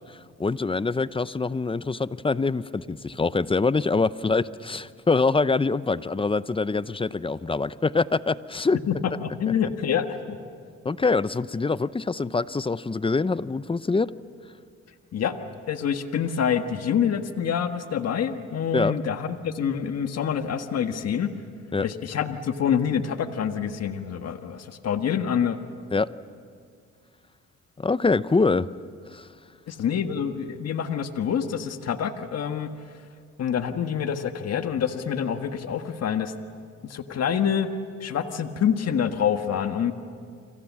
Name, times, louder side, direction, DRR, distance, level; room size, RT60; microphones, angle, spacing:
voice 1, 0.1-8.8 10.8-14.1 18.7-18.9 21.7-21.9 25.9-26.1 27.8-28.7 29.1-29.3, left 4 dB, 20° left, 16 dB, 0.6 m, -24 dB
voice 2, 9.2-10.4 15.1-15.4 15.7-21.3 21.8-25.6 29.7-32.7 33.4-36.3 36.8-37.7 38.0-39.9, left 8 dB, 55° left, 7 dB, 1.6 m, -26 dB
30.0 x 26.0 x 7.5 m, 2.2 s
cardioid pair, 90°, 30 cm